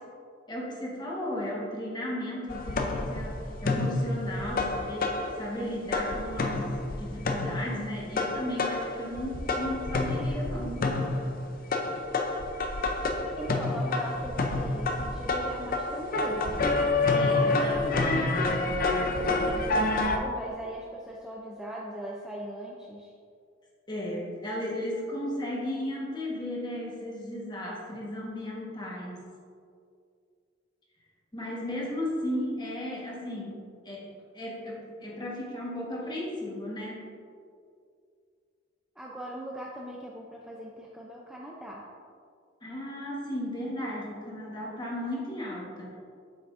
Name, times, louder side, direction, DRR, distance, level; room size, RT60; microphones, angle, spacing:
voice 1, 0.5-11.1 17.1-17.8 23.9-29.3 31.3-34.1 34.3-37.1 42.6-46.0, left 1 dB, 25° left, -4 dB, 1.3 m, -35 dB
sound 1, 2.5-5.6 5.9-20.2, left 2 dB, 50° left, 0.5 m, -28 dB
voice 2, 13.4-16.6 17.3-18.6 18.8-23.1 39.0-41.8, right 1 dB, 5° right, -4 dB, 0.4 m, -39 dB
8.0 x 5.9 x 2.6 m, 2.3 s
head